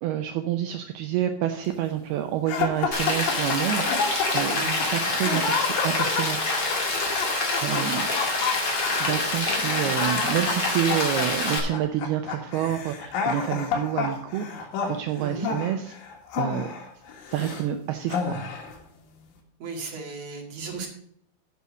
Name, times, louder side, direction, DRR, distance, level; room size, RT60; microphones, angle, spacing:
voice 1, 0.0-4.1 4.3-6.4 7.6-8.1 9.0-16.0 16.4-16.7 17.3-18.4, right 11 dB, 85° right, 7 dB, 2.2 m, -28 dB
sound 1, 2.5-17.7 18.1-18.8, left 5 dB, 85° left, 4.2 m, -30 dB
Rain, 2.9-11.6, left 2 dB, 40° left, 1.7 m, -26 dB
voice 2, 19.6-20.9, right 4 dB, 45° right, 1 dB, 2.4 m, -35 dB
8.2 x 7.9 x 6.3 m, 0.67 s
omnidirectional pair, 5.4 m